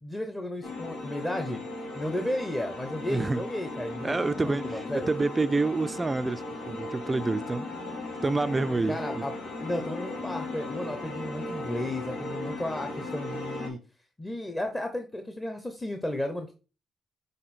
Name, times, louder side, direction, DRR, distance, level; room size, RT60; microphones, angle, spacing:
voice 1, 0.0-1.6 1.9-5.1 8.9-9.3 9.6-13.8 14.2-16.5, left 1 dB, 15° left, 0.8 m, -33 dB
sound 1, 0.6-13.7, left 2 dB, 85° left, 1.7 m, -37 dB
voice 2, 3.1-3.5 4.0-7.7 8.2-9.2, right 3 dB, 20° right, 0.4 m, -28 dB
6.6 x 3.5 x 4.2 m
cardioid pair, 90°, 0 cm